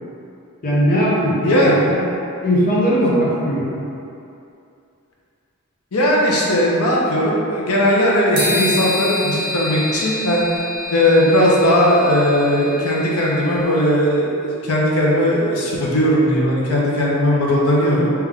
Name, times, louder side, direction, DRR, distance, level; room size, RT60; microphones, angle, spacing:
voice 1, 0.6-2.0 2.4-3.8, equal, 40° left, -7 dB, 0.9 m, -19 dB
voice 2, 1.4-1.7 5.9-10.4 10.9-18.1, equal, 85° left, -4 dB, 0.8 m, -17 dB
sound 1, 8.4-13.7, left 1 dB, 55° right, 1.3 m, -27 dB
3.4 x 3.1 x 3.6 m, 2.6 s
head